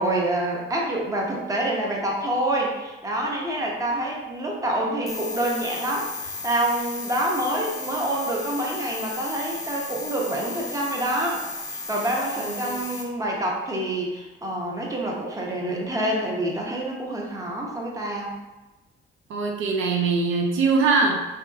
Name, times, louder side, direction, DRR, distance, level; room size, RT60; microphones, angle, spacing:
voice 1, 0.0-18.4, right 1 dB, 15° right, -2 dB, 0.8 m, -27 dB
sound 1, 5.1-13.0, left 2 dB, 15° left, 0.6 m, -34 dB
voice 2, 12.4-12.8 19.3-21.2, right 4 dB, 80° right, 1 dB, 0.5 m, -22 dB
3.4 x 2.8 x 2.3 m, 1.1 s
cardioid pair, 90°, 20 cm